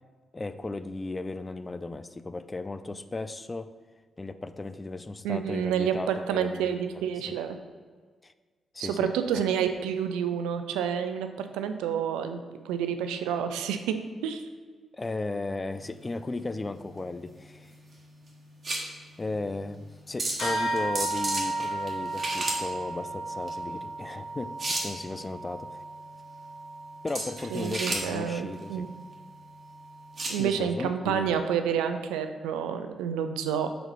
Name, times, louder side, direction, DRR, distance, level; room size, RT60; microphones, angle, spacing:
voice 1, 0.3-3.7 4.2-7.4 8.2-8.3 8.7-9.5 14.9-17.7 19.2-25.8 27.0-28.9 30.4-31.5, left 2 dB, 30° left, 12 dB, 0.3 m, -36 dB
voice 2, 5.2-7.6 8.8-12.4 12.6-14.4 27.5-28.9 30.3-33.7, right 8 dB, 80° right, 8 dB, 0.4 m, -29 dB
sound 1, 15.7-30.4, right 2 dB, 50° right, 1.4 m, -36 dB
sound 2, 20.4-30.2, right 2 dB, 65° left, 1.7 m, -35 dB
4.4 x 3.9 x 5.3 m, 1.5 s
hypercardioid pair, 40°, 0 cm